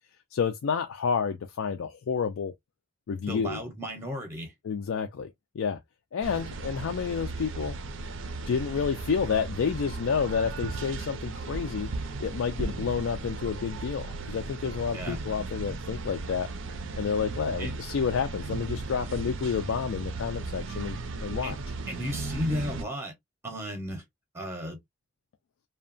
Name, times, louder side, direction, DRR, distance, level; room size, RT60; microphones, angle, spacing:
voice 1, 0.3-2.5 3.1-3.6 4.6-5.3 5.5-5.8 6.1-7.7 8.5-11.9 12.2-16.5 17.0-21.6, left 6 dB, 70° left, 0.4 m, -29 dB
voice 2, 3.3-4.5 14.9-15.2 17.6-17.7 21.4-21.5 21.9-23.1 23.4-24.0 24.3-24.8, equal, 10° right, 0.6 m, -34 dB
sound 1, 6.2-22.8, right 3 dB, 65° right, 0.5 m, -36 dB
2.8 x 2.2 x 2.5 m
head